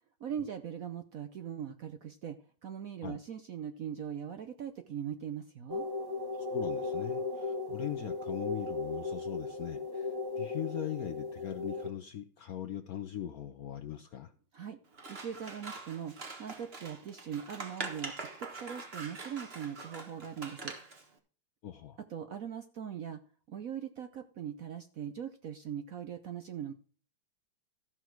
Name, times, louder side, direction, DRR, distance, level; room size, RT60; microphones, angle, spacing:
voice 1, 0.2-5.9 14.5-14.8 15.1-18.1 18.4-20.8 22.1-23.2 23.5-26.7, right 8 dB, 65° right, 8 dB, 0.8 m, -40 dB
sound 1, 5.7-11.9, left 3 dB, 15° right, 1.0 m, -36 dB
voice 2, 6.4-14.3 21.6-22.0, left 10 dB, 70° left, 9 dB, 0.9 m, -40 dB
Scissors, 14.9-21.0, right 3 dB, 35° right, 1.4 m, -44 dB
14.0 x 6.2 x 4.6 m, 0.41 s
omnidirectional pair, 2.2 m